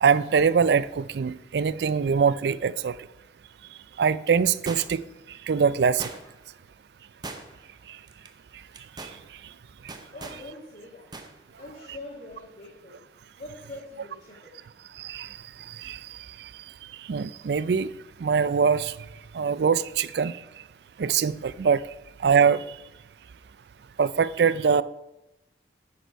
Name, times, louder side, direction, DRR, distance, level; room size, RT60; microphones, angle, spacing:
voice 1, 0.0-3.0 4.0-5.0 5.5-6.1 15.0-15.3 15.8-16.0 17.1-17.9 18.2-18.9 19.3-20.4 21.0-21.8 22.2-22.6 24.0-24.8, right 6 dB, 70° right, 0.4 m, -23 dB
sound 1, 4.7-5.2 6.0-6.5 7.2-7.7 8.1-8.3 8.7-9.2 9.9-10.4 11.1-11.3 11.6-11.7, right 3 dB, 25° right, 0.8 m, -39 dB
voice 2, 10.1-11.1 11.6-13.0 13.4-14.7, left 2 dB, 50° left, 1.8 m, -43 dB
10.5 x 6.8 x 4.6 m
head